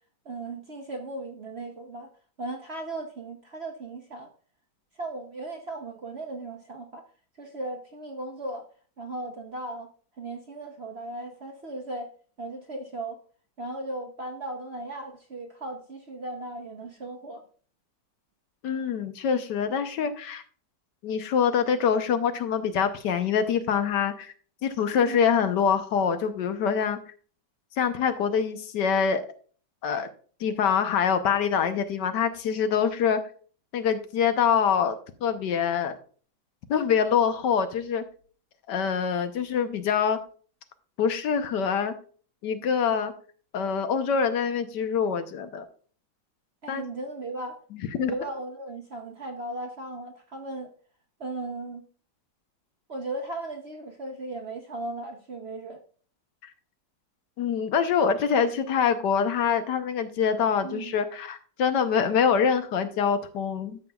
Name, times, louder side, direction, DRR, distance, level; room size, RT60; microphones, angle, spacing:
voice 1, 0.2-2.1 2.4-4.3 5.0-7.1 7.4-8.7 9.0-9.9 10.2-12.1 12.4-13.2 13.6-17.4 24.9-25.3 46.6-47.6 47.9-50.7 51.2-51.8 52.9-55.8 60.6-60.9, right 2 dB, 50° right, 0.8 m, -37 dB
voice 2, 18.6-20.4 21.0-24.3 24.6-27.0 27.8-29.2 29.8-30.1 30.4-33.2 33.7-34.9 35.2-35.9 36.7-38.0 38.7-40.2 41.0-41.9 42.4-43.1 43.5-45.7 46.7-46.8 47.7-48.1 56.4-56.5 57.4-63.8, left 7 dB, 75° left, 1.4 m, -25 dB
12.5 x 7.1 x 2.3 m
omnidirectional pair, 1.9 m